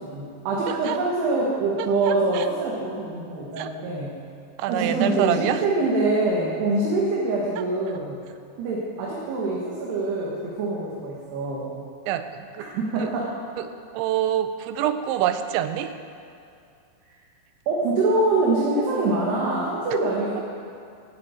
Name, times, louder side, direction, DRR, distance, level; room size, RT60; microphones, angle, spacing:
voice 1, 0.0-4.2 4.7-8.2 8.6-11.7 12.8-13.3 17.7-20.4, right 2 dB, 70° right, -4 dB, 3.5 m, -24 dB
voice 2, 0.7-1.0 2.1-2.5 3.6-3.7 4.6-5.6 12.1-12.7 13.0-13.1 13.6-13.7 13.9-15.9, right 11 dB, 90° right, 10 dB, 3.0 m, -26 dB
12.5 x 8.8 x 8.9 m, 2.5 s
omnidirectional pair, 5.1 m